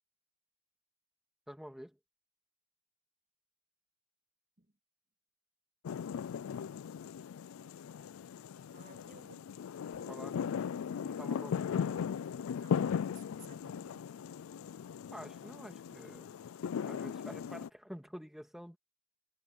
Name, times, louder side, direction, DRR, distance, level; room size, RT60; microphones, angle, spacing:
voice 1, 1.5-2.0 10.1-10.4 11.0-12.1 15.1-16.4 16.8-18.8, equal, ahead, 1.9 m, -48 dB
sound 1, 5.8-17.7, left 7 dB, 85° left, 0.3 m, -38 dB
voice 2, 8.7-9.5 11.4-11.5 12.6-14.2, right 3 dB, 40° right, 2.0 m, -59 dB
Bass guitar, 9.9-16.2, equal, 45° left, 4.9 m, -63 dB
head